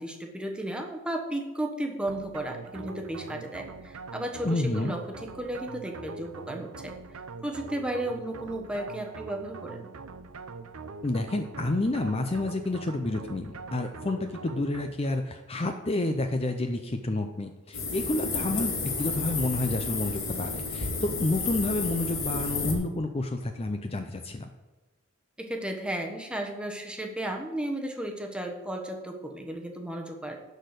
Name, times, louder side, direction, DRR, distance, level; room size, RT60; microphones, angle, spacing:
voice 1, 0.0-7.0 7.4-9.9 25.4-30.4, right 1 dB, 5° right, 2 dB, 1.1 m, -34 dB
sound 1, 2.1-15.3, right 4 dB, 90° right, 0.7 m, -43 dB
voice 2, 4.4-5.0 11.0-24.5, left 2 dB, 30° left, 5 dB, 0.6 m, -29 dB
sound 2, 17.7-22.7, left 4 dB, 80° left, 2.6 m, -31 dB
11.5 x 4.4 x 8.0 m, 1.1 s
head